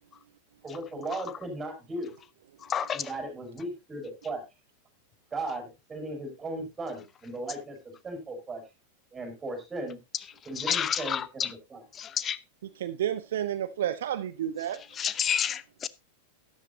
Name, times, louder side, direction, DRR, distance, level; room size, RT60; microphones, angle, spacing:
voice 1, 0.6-2.2 2.9-4.4 5.3-8.6 9.1-10.0 10.5-11.8, right 2 dB, 15° right, 5.7 m, -37 dB
voice 2, 2.6-3.1 10.1-10.3 10.6-11.5 11.9-12.4 14.7-15.9, left 8 dB, 25° left, 0.8 m, -30 dB
voice 3, 12.8-14.8, right 10 dB, 60° right, 0.6 m, -30 dB
13.0 x 11.5 x 2.7 m
figure-of-eight pair, 90°, 0 cm